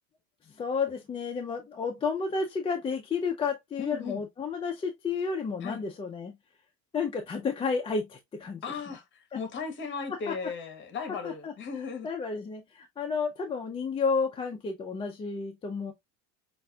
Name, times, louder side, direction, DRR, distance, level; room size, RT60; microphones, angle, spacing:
voice 1, 0.6-6.4 6.9-8.6 9.3-9.4 10.3-10.4 11.2-11.5 12.0-15.9, left 5 dB, 15° left, 0.4 m, -31 dB
voice 2, 3.8-4.2 5.6-5.8 8.6-12.1, left 5 dB, 35° left, 1.2 m, -36 dB
5.2 x 2.5 x 2.3 m
supercardioid pair, 130°, 35 cm